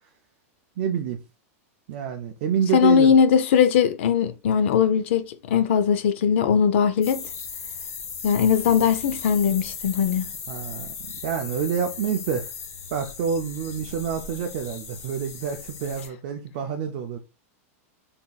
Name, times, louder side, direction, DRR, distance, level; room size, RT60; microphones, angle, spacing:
voice 1, 0.8-1.2 1.9-3.2 10.5-12.5 12.9-17.2, right 7 dB, 40° right, 0.4 m, -28 dB
voice 2, 2.7-7.2 8.2-10.3, left 7 dB, 55° left, 0.5 m, -20 dB
sound 1, 7.0-16.1, left 6 dB, 85° left, 0.9 m, -37 dB
3.9 x 3.5 x 2.3 m
supercardioid pair, 170°, 8 cm